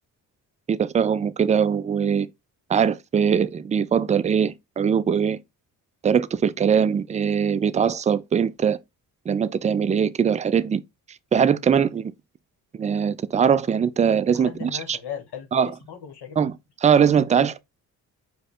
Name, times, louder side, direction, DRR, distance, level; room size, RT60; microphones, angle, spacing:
voice 1, 0.7-2.3 2.7-5.4 6.0-8.8 9.3-10.8 11.3-12.1 12.7-15.0 15.5-15.7 16.4-16.6 16.8-17.6, right 7 dB, 20° right, 0.3 m, -21 dB
voice 2, 14.3-16.4, left 8 dB, 60° left, 1.2 m, -37 dB
4.8 x 2.2 x 4.7 m
hypercardioid pair, 45°, 44 cm